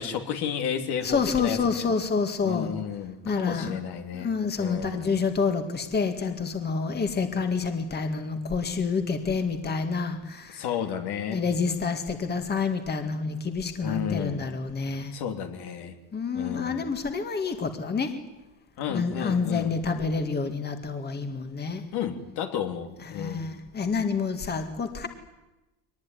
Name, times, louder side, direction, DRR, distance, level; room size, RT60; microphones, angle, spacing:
voice 1, 0.0-1.9 2.4-4.3 4.6-5.1 10.5-11.4 13.8-14.4 15.1-16.0 16.3-16.9 18.8-19.8 21.9-23.5, left 8 dB, 65° left, 5 dB, 3.0 m, -32 dB
voice 2, 1.0-2.7 3.2-3.8 4.1-10.7 11.3-15.1 16.1-18.1 18.9-21.8 23.0-25.1, left 5 dB, 25° left, 6 dB, 2.0 m, -28 dB
23.0 x 20.0 x 9.7 m, 1.0 s
cardioid pair, 125°, 43 cm